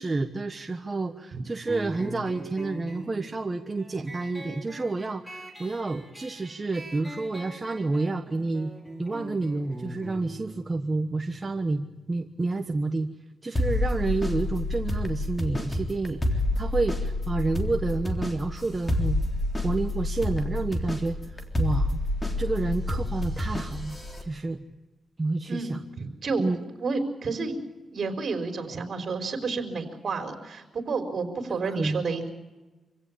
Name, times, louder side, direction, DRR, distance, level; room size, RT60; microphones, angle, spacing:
voice 1, 0.0-8.7 9.0-13.1 13.4-19.2 19.6-22.0 22.4-24.6 25.2-25.8 26.4-26.6 31.5-32.0, right 3 dB, 25° right, 5 dB, 1.2 m, -29 dB
sound 1, 1.7-12.8, right 1 dB, 5° right, 4.5 m, -43 dB
sound 2, 13.6-24.2, left 1 dB, 20° left, 3.6 m, -29 dB
voice 2, 25.5-26.5 26.8-27.6 27.9-32.3, right 4 dB, 55° right, 6 dB, 4.5 m, -30 dB
26.5 x 16.5 x 8.6 m, 1.2 s
cardioid pair, 100°, 0 cm